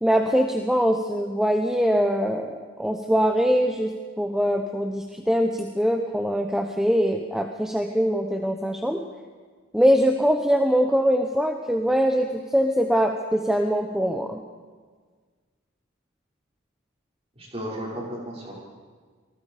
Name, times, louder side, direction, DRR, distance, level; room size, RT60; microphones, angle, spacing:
voice 1, 0.0-9.0 9.7-14.4, equal, 5° right, 4 dB, 0.9 m, -22 dB
voice 2, 17.3-18.5, equal, 30° right, -4 dB, 6.3 m, -34 dB
27.0 x 19.5 x 5.1 m, 1.5 s
head